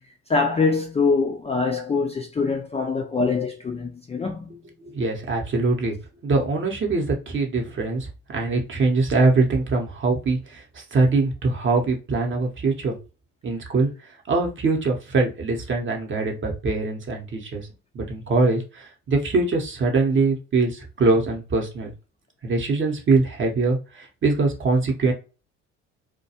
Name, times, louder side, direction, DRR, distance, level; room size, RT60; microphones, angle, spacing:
voice 1, 0.3-4.5, left 4 dB, 15° left, 0.4 m, -24 dB
voice 2, 4.9-5.9 6.2-13.0 13.4-13.9 14.3-17.7 17.9-21.9 22.4-25.1, right 3 dB, 35° right, 0.8 m, -23 dB
2.3 x 2.2 x 2.8 m
hypercardioid pair, 60°, 37 cm